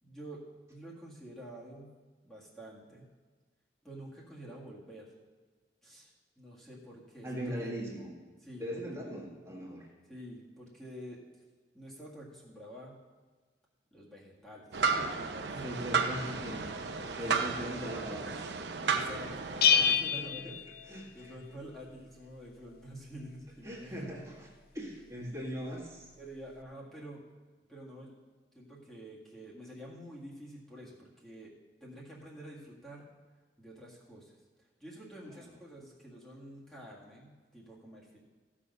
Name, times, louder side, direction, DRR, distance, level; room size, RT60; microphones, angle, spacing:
voice 1, 0.0-1.9 2.2-3.1 3.8-5.1 5.8-7.7 8.4-9.0 10.1-11.4 11.7-13.0 13.9-15.7 16.8-17.4 18.8-24.1 26.2-27.2 27.7-28.1 28.5-31.5 31.8-33.1 33.6-34.4 34.8-38.2, right 1 dB, 5° left, -6 dB, 1.8 m, -48 dB
voice 2, 7.2-8.1 8.6-9.9 15.6-16.9 17.1-18.4 19.8-20.6 20.8-21.3 23.6-24.5 24.7-26.1 35.2-35.5, equal, 15° right, -4 dB, 1.8 m, -40 dB
sound 1, 14.7-19.9, right 5 dB, 80° right, 0.8 m, -33 dB
Bell, 19.6-21.4, left 7 dB, 55° left, 0.5 m, -27 dB
14.5 x 6.2 x 5.4 m, 1.4 s
head